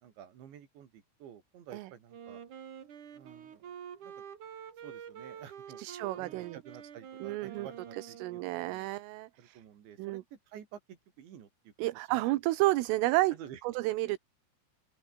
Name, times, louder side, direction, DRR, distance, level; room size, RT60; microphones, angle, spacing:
voice 1, 0.0-2.4 3.1-3.7 4.0-4.2 4.8-5.8 6.2-8.9 9.4-12.2 13.3-13.6, right 9 dB, 60° right, 5.2 m, -51 dB
Wind instrument woodwind instrument, 2.1-8.8, right 8 dB, 45° right, 3.2 m, -47 dB
voice 2, 5.8-6.6 7.2-7.7 8.0-9.6 10.0-10.2 11.8-13.4 13.7-14.2, right 19 dB, 80° right, 3.5 m, -31 dB
open air
omnidirectional pair, 5.9 m